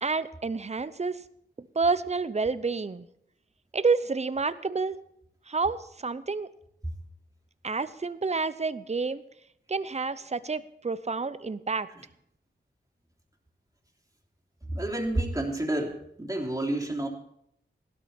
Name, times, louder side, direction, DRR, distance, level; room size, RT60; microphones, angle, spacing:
voice 1, 0.0-1.2 1.6-3.1 3.7-5.0 5.5-6.5 7.6-9.2 9.7-11.9, right 4 dB, 35° right, 15 dB, 0.7 m, -29 dB
voice 2, 14.7-17.1, right 1 dB, 15° right, 0 dB, 3.2 m, -29 dB
16.5 x 12.5 x 4.4 m, 0.73 s
cardioid pair, 40°, 20 cm